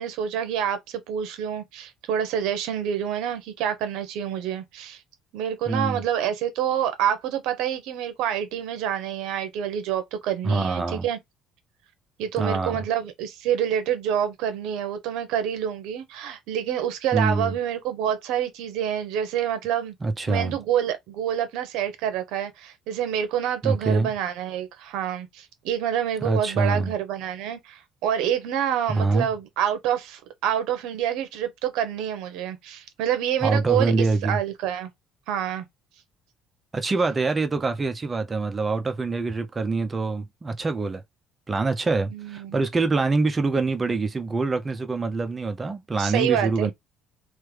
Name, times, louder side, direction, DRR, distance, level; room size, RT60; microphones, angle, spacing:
voice 1, 0.0-5.0 5.3-11.2 12.2-19.9 20.3-34.9 35.3-35.7 42.1-42.6 46.0-46.7, right 9 dB, 75° right, 0.8 m, -27 dB
voice 2, 5.7-6.0 10.4-11.1 12.4-12.8 17.1-17.6 20.0-20.6 23.6-24.1 26.2-26.9 28.9-29.3 33.4-34.4 36.7-41.0 41.5-46.7, right 3 dB, 20° right, 0.5 m, -25 dB
3.2 x 2.1 x 3.2 m
cardioid pair, 145°, 0 cm